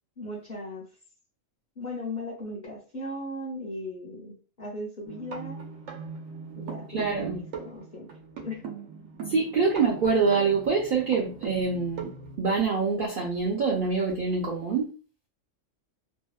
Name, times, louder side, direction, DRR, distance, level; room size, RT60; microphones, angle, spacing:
voice 1, 0.2-0.8 1.8-5.6 6.6-8.1 8.4-8.6, left 1 dB, 45° left, -3 dB, 0.6 m, -37 dB
sound 1, 5.1-12.4, right 6 dB, 85° right, 1.0 m, -40 dB
voice 2, 6.9-7.4 9.3-12.1 12.4-14.9, right 4 dB, 60° right, -3 dB, 0.5 m, -25 dB
2.6 x 2.0 x 2.2 m, 0.36 s
omnidirectional pair, 1.3 m